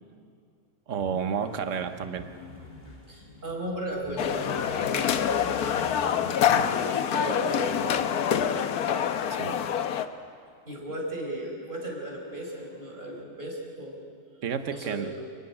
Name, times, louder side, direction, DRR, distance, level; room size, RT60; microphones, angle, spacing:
voice 1, 0.9-2.3 9.3-9.6 14.4-15.1, right 7 dB, 60° right, 8 dB, 1.4 m, -31 dB
sound 1, 1.0-9.9 12.3-13.2, left 2 dB, 30° left, 2.5 m, -45 dB
voice 2, 3.1-6.2 6.5-8.1 10.6-14.0 14.7-15.3, right 1 dB, 30° right, 0 dB, 4.8 m, -36 dB
sound 2, 4.2-10.1, left 8 dB, 90° left, 1.4 m, -26 dB
29.0 x 11.0 x 10.0 m, 2.3 s
omnidirectional pair, 1.6 m